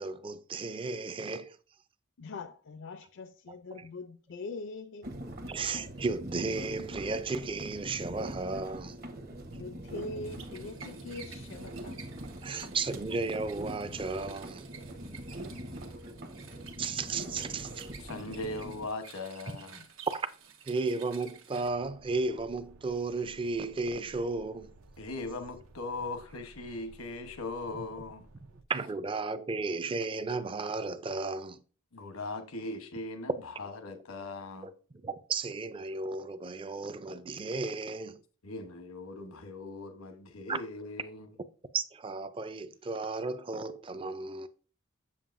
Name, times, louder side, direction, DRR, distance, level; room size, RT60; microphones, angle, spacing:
voice 1, 0.0-1.6 3.5-3.9 5.5-9.0 12.4-14.7 16.8-17.9 19.5-19.6 20.1-20.3 20.7-24.7 28.7-31.6 34.6-34.7 35.0-38.2 40.5-40.6 41.7-44.5, right 3 dB, 25° right, 0.4 m, -34 dB
voice 2, 2.2-5.1 9.5-12.0 12.5-12.6, left 3 dB, 60° left, 0.4 m, -42 dB
sound 1, 5.0-18.9, right 1 dB, 45° right, 0.9 m, -43 dB
sound 2, 10.2-21.7, right 6 dB, 65° right, 1.2 m, -52 dB
voice 3, 18.0-19.8 25.0-28.2 31.9-34.7 38.4-41.3, left 2 dB, 85° left, 1.0 m, -39 dB
sound 3, 21.6-28.6, right 2 dB, 85° right, 0.7 m, -56 dB
7.4 x 7.2 x 2.5 m
head